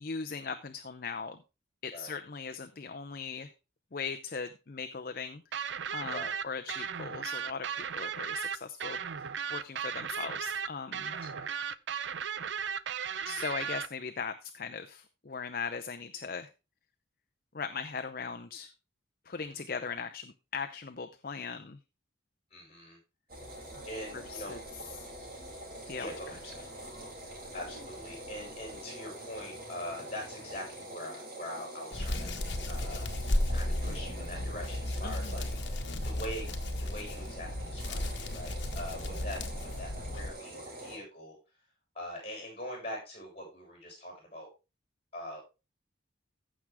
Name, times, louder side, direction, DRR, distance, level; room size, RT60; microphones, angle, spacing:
voice 1, 0.0-1.4 1.8-3.5 3.9-11.1 13.2-16.5 17.5-18.7 19.3-21.8 23.8-23.9 24.3-24.6 25.0-25.1 25.9-26.1 35.0-35.4, left 5 dB, 45° left, 7 dB, 0.6 m, -39 dB
sound 1, 5.5-13.9, right 7 dB, 65° right, 0.5 m, -36 dB
voice 2, 11.1-11.5 19.3-19.6 22.5-23.0 23.9-24.6 26.0-26.7 27.5-32.4 32.7-33.1 33.5-36.5 36.8-39.4 39.8-41.4 41.9-44.5 45.1-45.5, left 1 dB, 30° left, 0 dB, 6.9 m, -43 dB
sound 2, 23.3-41.0, right 1 dB, 45° right, 4.2 m, -45 dB
Hands, 31.9-40.3, left 1 dB, 60° left, 1.5 m, -34 dB
15.0 x 6.1 x 3.5 m, 0.29 s
head